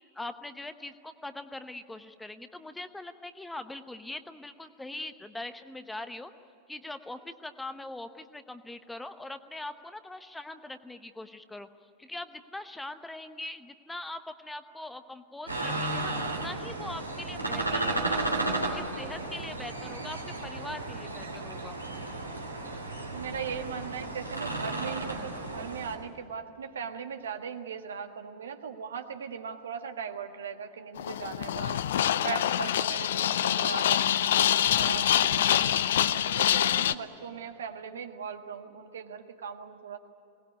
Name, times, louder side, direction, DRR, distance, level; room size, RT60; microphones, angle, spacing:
voice 1, 0.1-6.3 6.7-11.7 12.0-18.2 18.7-21.8, left 2 dB, 5° left, 10 dB, 1.0 m, -42 dB
sound 1, 15.5-26.0, right 2 dB, 85° right, 3.1 m, -33 dB
voice 2, 23.1-31.9 32.2-35.8 36.3-40.0, right 6 dB, 65° right, 7 dB, 1.6 m, -39 dB
sound 2, 31.0-36.9, left 11 dB, 60° left, 0.6 m, -25 dB
22.5 x 19.0 x 9.5 m, 2.7 s
figure-of-eight pair, 90°, 0 cm